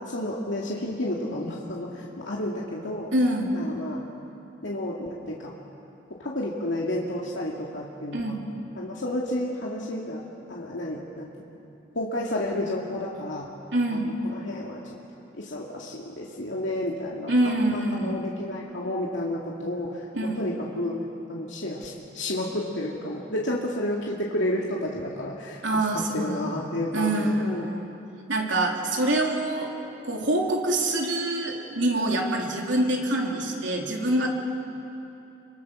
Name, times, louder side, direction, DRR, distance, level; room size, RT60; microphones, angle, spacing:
voice 1, 0.1-3.1 3.5-4.0 4.6-5.5 6.2-8.4 8.8-10.2 10.5-11.3 12.0-13.5 13.9-15.0 15.4-21.0 21.3-25.8 26.1-27.7, left 1 dB, 80° left, -3 dB, 2.3 m, -31 dB
voice 2, 3.1-3.6 8.1-8.5 13.7-14.2 17.3-18.3 20.1-20.5 25.6-27.9 28.3-29.7 30.0-34.3, right 1 dB, 80° right, 0 dB, 3.3 m, -25 dB
27.0 x 23.5 x 6.3 m, 2.8 s
head